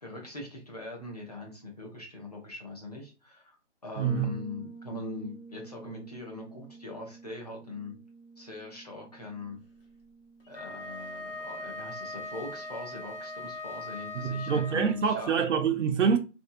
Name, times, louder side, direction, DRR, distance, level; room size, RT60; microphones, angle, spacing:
voice 1, 0.0-3.6 3.8-8.0 8.4-9.6 10.5-15.4, left 2 dB, 35° left, 0.6 m, -41 dB
Bass guitar, 4.0-13.7, right 3 dB, 75° left, 0.6 m, -51 dB
voice 2, 4.0-4.3 14.2-16.2, right 6 dB, 80° right, 0.5 m, -26 dB
Wind instrument woodwind instrument, 10.5-15.1, left 2 dB, 50° left, 1.0 m, -40 dB
2.6 x 2.0 x 2.5 m
hypercardioid pair, 180°, 36 cm